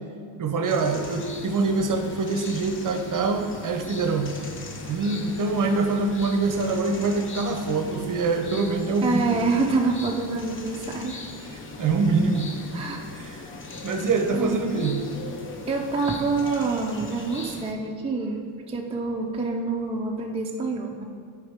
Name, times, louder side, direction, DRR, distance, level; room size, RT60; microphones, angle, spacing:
voice 1, 0.4-4.3 4.9-9.4 11.5-12.5 13.2-13.4 13.8-15.0, right 3 dB, 40° right, 6 dB, 0.8 m, -24 dB
sound 1, 0.7-17.7, left 3 dB, 25° left, 0.7 m, -40 dB
voice 2, 9.0-11.2 11.7-11.8 12.7-13.0 14.3-14.9 15.7-21.0, right 3 dB, 15° right, 0 dB, 0.5 m, -27 dB
10.0 x 4.8 x 3.6 m, 2.3 s
cardioid pair, 95°, 48 cm